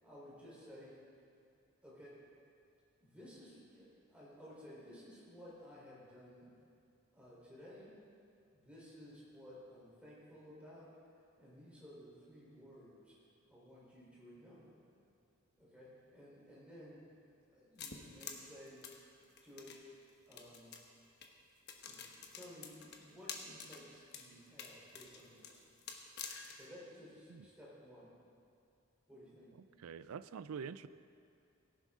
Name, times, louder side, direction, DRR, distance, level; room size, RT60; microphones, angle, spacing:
voice 1, 0.0-0.9 1.8-2.2 3.0-6.5 7.1-8.0 8.5-10.9 11.4-13.2 13.5-14.8 15.6-17.1 17.5-18.8 19.4-19.8 20.2-20.8 21.8-25.7 26.5-28.1 29.1-29.8, equal, 5° right, -7 dB, 3.7 m, -55 dB
sound 1, 17.8-19.8 20.3-20.9 21.2-21.3 21.7-23.8 24.1-24.3 24.6-26.7, left 6 dB, 50° left, 1.1 m, -48 dB
voice 2, 29.8-30.9, right 6 dB, 90° right, 15 dB, 0.4 m, -45 dB
17.5 x 11.0 x 3.7 m, 2.4 s
head